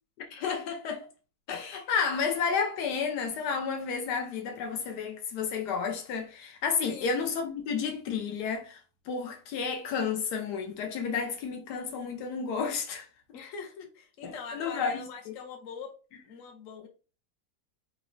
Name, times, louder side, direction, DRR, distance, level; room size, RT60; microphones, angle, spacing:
voice 1, 0.3-1.1 1.5-8.8 9.1-13.1 14.2-15.3, left 5 dB, 85° left, 1.3 m, -31 dB
voice 2, 6.9-7.2 13.3-15.9 16.2-16.9, left 5 dB, 60° left, 1.0 m, -43 dB
3.9 x 2.0 x 2.5 m
omnidirectional pair, 1.7 m